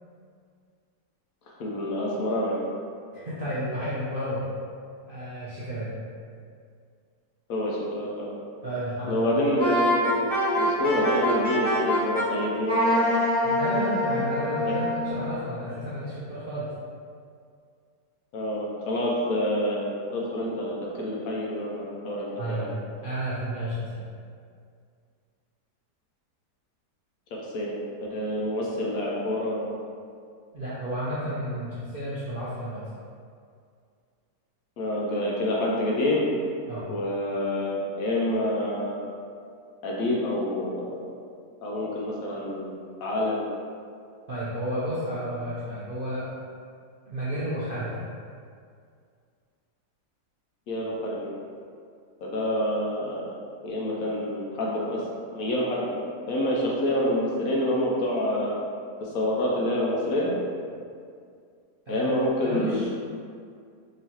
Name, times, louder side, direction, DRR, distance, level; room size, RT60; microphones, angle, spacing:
voice 1, 1.6-2.6 7.5-8.3 9.1-13.1 18.3-22.8 27.3-29.7 34.8-36.2 36.9-39.0 39.8-41.1 41.6-43.4 50.7-51.3 52.2-53.3 53.6-55.0 55.3-56.0 56.3-58.5 59.0-60.3 61.9-62.9, left 1 dB, 70° left, -4 dB, 0.9 m, -27 dB
voice 2, 3.1-4.4 5.1-5.9 8.6-9.3 13.4-16.7 22.4-22.7 23.0-24.0 30.5-32.9 36.7-36.9 44.3-46.3 47.1-48.0 61.9-62.1 62.4-62.9, equal, 60° right, -10 dB, 0.5 m, -32 dB
Wind instrument woodwind instrument, 9.6-12.3 12.7-15.1, left 1 dB, 10° left, 0.7 m, -24 dB
3.8 x 3.0 x 2.9 m, 2.2 s
omnidirectional pair, 1.7 m